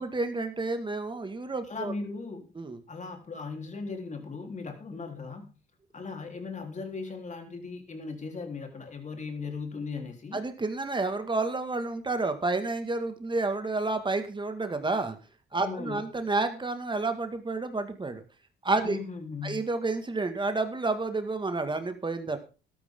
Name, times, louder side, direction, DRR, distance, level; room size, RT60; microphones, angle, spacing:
voice 1, 0.0-1.9 2.6-2.8 10.3-15.2 15.5-18.2 18.6-19.0 19.4-22.4, right 3 dB, 25° right, 8 dB, 2.0 m, -30 dB
voice 2, 1.7-2.5 2.9-5.5 5.9-10.4 15.6-16.0 18.8-19.6, left 4 dB, 40° left, 4 dB, 3.8 m, -38 dB
13.0 x 12.5 x 3.8 m, 0.34 s
cardioid pair, 90°, 20 cm